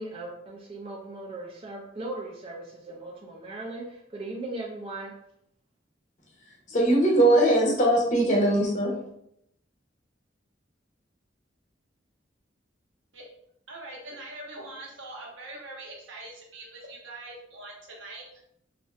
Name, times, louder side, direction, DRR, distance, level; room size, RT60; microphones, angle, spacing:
voice 1, 0.0-5.1, right 2 dB, 30° right, -1 dB, 0.4 m, -38 dB
voice 2, 6.7-8.9, right 1 dB, 40° left, -2 dB, 0.7 m, -21 dB
voice 3, 13.7-18.4, right 2 dB, 85° right, -2 dB, 0.9 m, -43 dB
3.2 x 2.6 x 2.3 m, 0.75 s
head